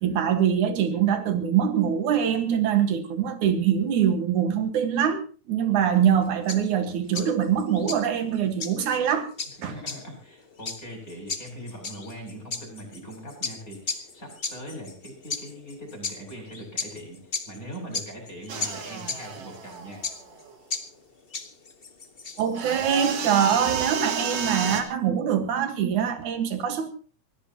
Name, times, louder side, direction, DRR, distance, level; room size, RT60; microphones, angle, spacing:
voice 1, 0.0-9.3 9.6-9.7 22.4-26.9, right 8 dB, 80° right, 8 dB, 3.1 m, -24 dB
sound 1, 6.1-22.6, left 4 dB, 45° left, 0.7 m, -36 dB
voice 2, 9.6-20.0, equal, 25° left, 1 dB, 7.3 m, -41 dB
sound 2, 18.5-20.5 22.5-24.8, right 6 dB, 55° right, 2.8 m, -31 dB
24.5 x 15.5 x 2.9 m, 0.34 s
omnidirectional pair, 3.4 m